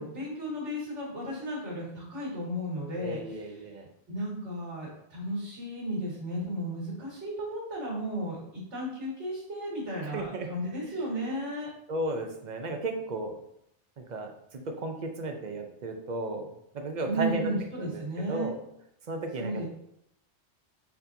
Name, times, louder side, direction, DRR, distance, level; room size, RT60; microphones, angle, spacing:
voice 1, 0.0-3.6 4.1-11.7 17.0-18.5 19.4-19.6, right 1 dB, 85° right, -5 dB, 2.3 m, -34 dB
voice 2, 3.0-3.9 10.1-10.9 11.9-13.4 14.0-16.4 16.7-17.5 17.8-18.0 18.3-18.6 19.1-19.6, right 2 dB, 50° right, 4 dB, 0.6 m, -34 dB
4.4 x 4.2 x 2.6 m, 0.77 s
omnidirectional pair, 1.2 m